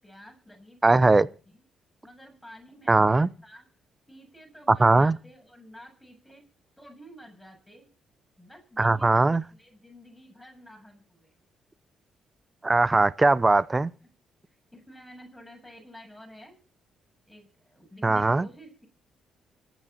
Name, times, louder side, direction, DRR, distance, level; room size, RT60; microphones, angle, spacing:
voice 1, 0.0-1.6 2.0-3.7 4.1-6.4 6.8-7.9 8.4-11.3 14.0-14.1 14.5-16.6 17.3-18.9, equal, ahead, 7.4 m, -50 dB
voice 2, 0.8-1.3 2.9-3.3 4.7-5.2 8.8-9.4 12.6-13.9 18.0-18.4, right 3 dB, 20° right, 0.7 m, -20 dB
25.0 x 9.4 x 4.3 m
cardioid pair, 90°, 0 cm